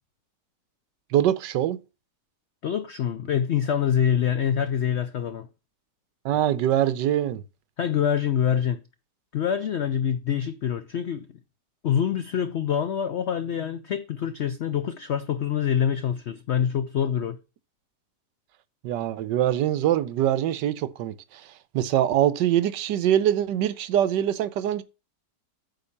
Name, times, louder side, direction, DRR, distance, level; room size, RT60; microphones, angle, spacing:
voice 1, 1.1-1.8 6.2-7.4 18.8-24.8, right 11 dB, 80° right, 1.3 m, -24 dB
voice 2, 2.6-5.5 7.8-8.8 9.3-11.3 11.8-17.4, left 9 dB, 85° left, 0.6 m, -25 dB
9.0 x 3.9 x 7.1 m
omnidirectional pair, 1.9 m